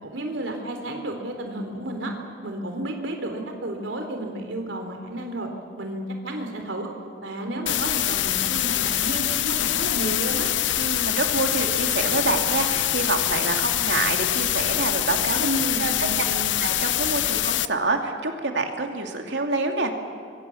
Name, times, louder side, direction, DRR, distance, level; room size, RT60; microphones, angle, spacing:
voice 1, 0.0-2.1 2.4-5.5 5.8-6.9 7.2-10.5 15.4-16.6, right 1 dB, 90° right, 4 dB, 3.5 m, -31 dB
sound 1, 7.7-17.7, left 13 dB, 75° left, 0.6 m, -24 dB
voice 2, 10.8-15.5 15.8-15.9 16.2-16.3 16.6-19.9, right 3 dB, 70° right, 3 dB, 2.6 m, -27 dB
26.0 x 23.5 x 7.2 m, 2.3 s
head